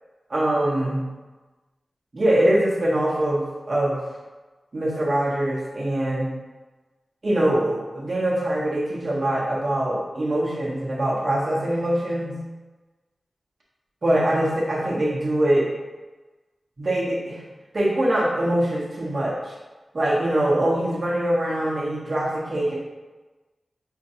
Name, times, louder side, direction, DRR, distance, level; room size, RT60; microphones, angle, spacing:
voice 1, 0.3-1.1 2.1-4.0 4.7-6.3 7.2-12.4 14.0-15.7 16.8-17.4 17.7-19.5 19.9-22.7, right 1 dB, 45° right, -5 dB, 1.0 m, -23 dB
4.4 x 2.9 x 2.7 m, 1.2 s
wide cardioid pair, 115°, 0 cm